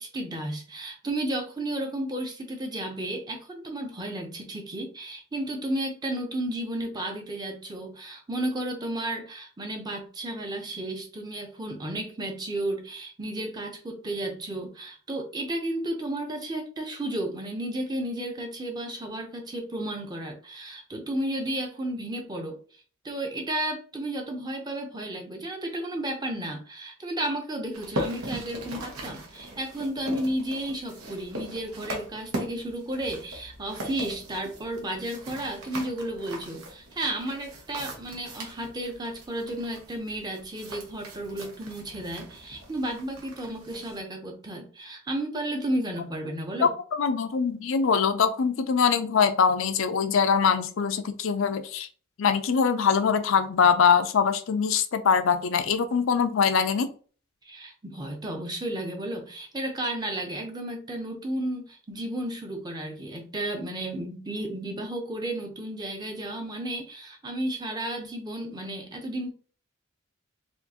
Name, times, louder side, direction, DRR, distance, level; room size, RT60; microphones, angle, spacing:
voice 1, 0.0-22.6 23.0-46.7 57.4-69.3, right 1 dB, 20° right, 3 dB, 0.7 m, -33 dB
sound 1, 27.7-44.0, equal, 90° right, 1.1 m, -39 dB
voice 2, 46.6-51.9 52.2-56.9, left 6 dB, 65° left, 9 dB, 0.4 m, -23 dB
4.4 x 2.4 x 2.8 m, 0.40 s
head